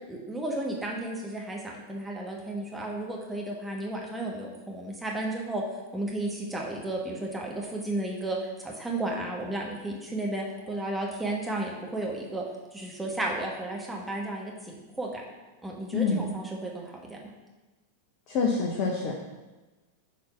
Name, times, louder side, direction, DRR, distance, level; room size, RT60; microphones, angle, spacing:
voice 1, 0.1-5.6 5.9-12.4 12.7-15.2 15.6-17.2, right 2 dB, 5° right, -2 dB, 1.5 m, -33 dB
voice 2, 15.9-16.3 18.3-19.1, left 4 dB, 40° left, -1 dB, 1.0 m, -26 dB
6.6 x 4.2 x 5.7 m, 1.2 s
figure-of-eight pair, 90°, 0 cm